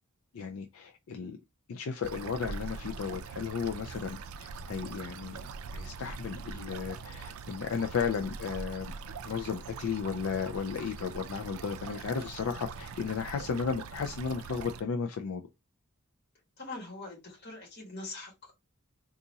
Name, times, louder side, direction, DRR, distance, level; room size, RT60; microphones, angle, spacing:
voice 1, 0.3-1.4 1.7-5.4 5.7-8.9 9.2-15.4, left 6 dB, 75° left, 0.4 m, -34 dB
sound 1, 2.0-14.8, right 5 dB, 80° right, 0.4 m, -42 dB
voice 2, 16.6-18.5, left 2 dB, 50° left, 1.5 m, -43 dB
3.9 x 2.4 x 2.7 m
head